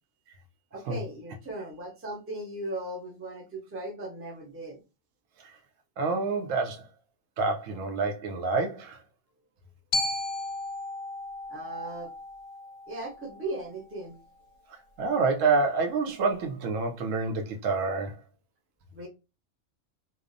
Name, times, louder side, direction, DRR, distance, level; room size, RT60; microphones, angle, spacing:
voice 1, 0.7-4.8 11.5-12.1 12.9-14.2 18.9-19.1, right 1 dB, 15° right, 0.4 m, -37 dB
voice 2, 6.0-6.8 7.4-9.0 15.0-18.2, right 4 dB, 90° right, 1.0 m, -27 dB
Glockenspiel, 9.9-14.0, left 2 dB, 60° left, 0.7 m, -35 dB
2.9 x 2.0 x 2.5 m
omnidirectional pair, 1.3 m